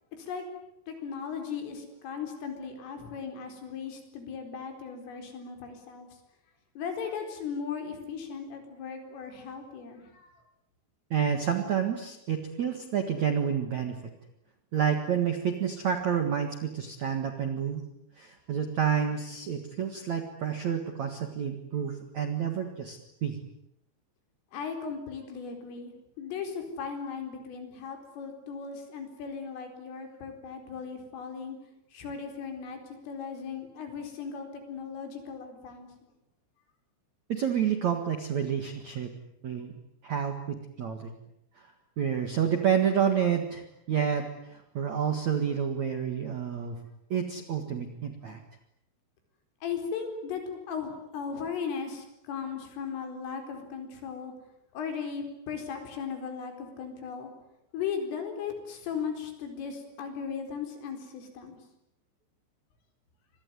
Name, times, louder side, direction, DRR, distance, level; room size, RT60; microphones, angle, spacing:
voice 1, 0.9-6.1 6.8-10.3 24.5-31.6 31.9-35.9 49.6-54.3 54.7-57.3 57.7-61.6, left 6 dB, 70° left, 5 dB, 6.8 m, -37 dB
voice 2, 11.1-14.0 14.7-17.8 18.2-23.4 37.3-39.1 39.4-39.8 40.0-41.1 42.0-46.8 47.1-48.4, right 8 dB, 60° right, 6 dB, 1.9 m, -29 dB
26.0 x 21.0 x 9.7 m, 0.83 s
omnidirectional pair, 6.0 m